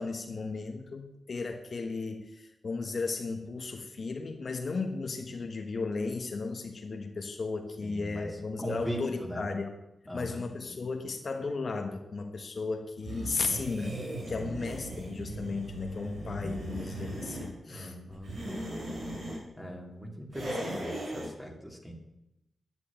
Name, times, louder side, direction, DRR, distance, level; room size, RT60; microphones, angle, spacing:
voice 1, 0.0-9.7 10.1-14.0 14.3-18.0, left 4 dB, 50° left, 4 dB, 1.3 m, -35 dB
voice 2, 7.8-8.3 8.6-9.4 10.1-10.5 14.3-14.5 17.7-18.3 19.6-21.9, equal, 5° right, 1 dB, 2.7 m, -39 dB
sound 1, 13.0-17.5 18.1-19.4 20.3-21.3, right 1 dB, 80° right, 6.5 m, -38 dB
10.5 x 9.5 x 8.8 m, 0.91 s
wide cardioid pair, 120°, 0 cm